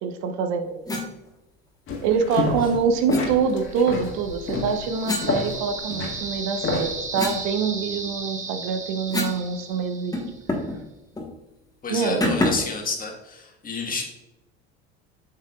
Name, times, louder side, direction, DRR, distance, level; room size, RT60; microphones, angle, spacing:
voice 1, 0.0-0.8 2.0-10.2 11.9-12.3, right 6 dB, 65° right, 7 dB, 0.9 m, -25 dB
sound 1, 0.9-1.1 3.1-3.3 5.0-6.1 6.6-9.5 9.7-9.8 10.1-10.8 11.1-11.3 12.2-12.8, left 2 dB, 10° left, 1.2 m, -29 dB
sound 2, 1.9-2.8 3.1-7.0, left 4 dB, 45° left, 1.8 m, -29 dB
sound 3, 3.6-10.5, right 3 dB, 25° right, 1.3 m, -35 dB
voice 2, 11.8-14.2, left 4 dB, 30° left, 1 dB, 1.6 m, -30 dB
7.7 x 5.6 x 2.4 m, 0.98 s
supercardioid pair, 90°, 29 cm